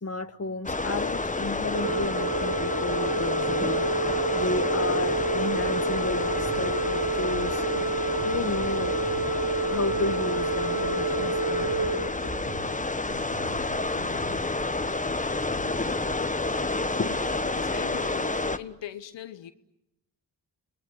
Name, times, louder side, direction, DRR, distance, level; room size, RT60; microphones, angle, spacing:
voice 1, 0.0-3.9 4.4-7.7 8.1-9.0 9.7-11.7 14.4-14.5 15.7-16.0 17.0-17.5, left 3 dB, 35° left, 1.7 m, -33 dB
sound 1, 0.6-18.6, left 2 dB, 15° left, 1.3 m, -29 dB
Organ, 1.7-12.8, right 3 dB, 50° right, 1.1 m, -29 dB
sound 2, 6.5-15.7, right 4 dB, 80° right, 2.9 m, -45 dB
voice 2, 17.2-19.5, left 11 dB, 85° left, 1.2 m, -41 dB
28.5 x 20.0 x 9.8 m
cardioid pair, 55°, 43 cm